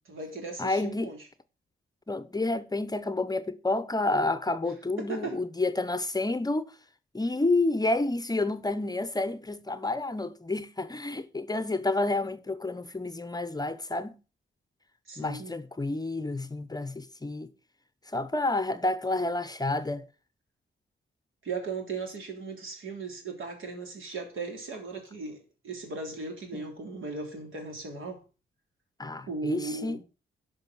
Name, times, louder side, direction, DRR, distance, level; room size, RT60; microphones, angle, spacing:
voice 1, 0.1-1.2 5.0-5.4 15.1-15.6 21.4-25.4 25.6-28.2 29.3-30.0, right 4 dB, 75° right, 3.3 m, -37 dB
voice 2, 0.6-1.1 2.1-6.7 7.1-14.2 15.2-17.5 18.1-20.1 26.5-26.6 29.0-30.0, left 2 dB, 20° left, 0.7 m, -29 dB
11.0 x 5.4 x 6.0 m
cardioid pair, 90°, 21 cm